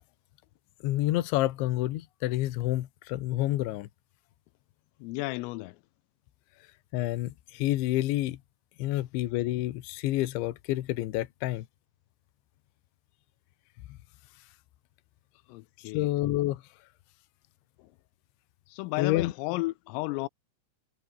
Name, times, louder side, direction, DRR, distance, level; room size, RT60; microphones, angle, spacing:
voice 1, 0.8-3.9 6.9-8.4 8.8-11.7 13.9-14.0 15.9-16.6 19.0-19.3, left 16 dB, 75° left, 3.4 m, -28 dB
voice 2, 5.0-5.8 15.5-16.1 18.7-20.3, left 21 dB, 90° left, 3.4 m, -33 dB
omnidirectional pair, 5.8 m